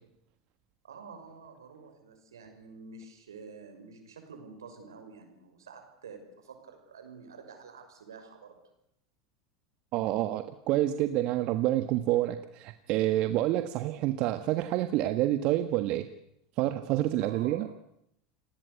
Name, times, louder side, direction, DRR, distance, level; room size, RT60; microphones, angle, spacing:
voice 1, 0.8-8.6 17.2-17.7, right 5 dB, 85° right, 6 dB, 6.2 m, -49 dB
voice 2, 9.9-16.1 16.6-17.7, right 14 dB, 55° right, 9 dB, 1.5 m, -28 dB
29.5 x 18.5 x 8.3 m, 0.78 s
hypercardioid pair, 90°, 2 cm